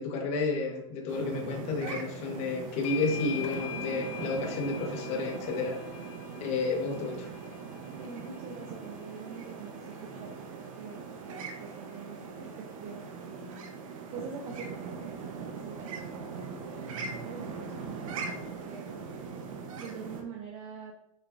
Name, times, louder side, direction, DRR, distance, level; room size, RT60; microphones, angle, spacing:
voice 1, 0.0-5.8 6.4-7.3 16.8-17.2, left 3 dB, 35° left, 1 dB, 1.5 m, -31 dB
sound 1, 1.1-20.2, right 5 dB, 70° right, 1.2 m, -41 dB
sound 2, 1.9-2.2 2.5-9.8, left 7 dB, 65° left, 1.2 m, -43 dB
voice 2, 7.9-13.7 14.1-18.9 19.8-21.0, right 5 dB, 35° right, 1 dB, 1.0 m, -45 dB
6.6 x 5.9 x 2.8 m, 0.82 s
hypercardioid pair, 135°, 18 cm